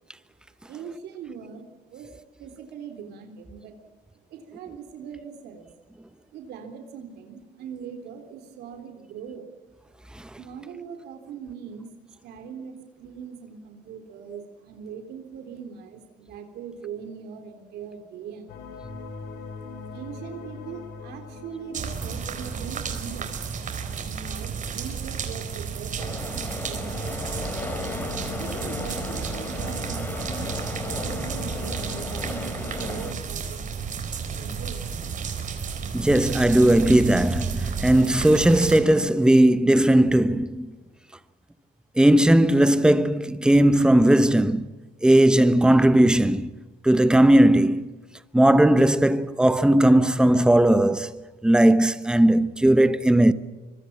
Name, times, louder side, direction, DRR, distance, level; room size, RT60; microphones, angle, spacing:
voice 1, 0.6-2.1 2.4-3.7 4.3-5.7 6.3-9.5 10.4-18.8 19.9-23.3 24.0-27.4 28.3-34.0 34.3-35.1, right 6 dB, 75° right, 3.5 m, -41 dB
sound 1, 18.5-23.8 25.8-33.1, left 5 dB, 85° left, 4.8 m, -41 dB
sound 2, 21.7-38.8, right 6 dB, 50° right, 4.3 m, -32 dB
sound 3, 26.0-33.1, left 1 dB, 10° left, 3.0 m, -35 dB
voice 2, 35.9-40.7 42.0-44.7 45.0-46.5 46.8-47.9 48.3-53.3, right 1 dB, 5° right, 1.0 m, -18 dB
24.5 x 23.0 x 7.3 m
cardioid pair, 110°, 17 cm